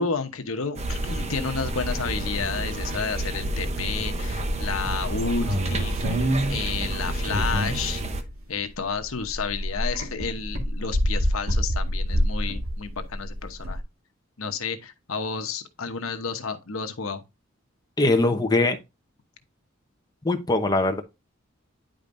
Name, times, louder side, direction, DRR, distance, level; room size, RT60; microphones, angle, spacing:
voice 1, 0.0-6.2 6.5-8.0 8.5-13.8 14.4-17.2, left 5 dB, 90° left, 1.0 m, -31 dB
sound 1, 0.8-8.2, right 1 dB, 35° right, 0.8 m, -29 dB
sound 2, 5.4-8.5 8.8-13.8, equal, 85° right, 1.8 m, -27 dB
voice 2, 18.0-18.8 20.2-21.0, left 2 dB, 20° left, 0.9 m, -21 dB
10.0 x 5.1 x 2.6 m
head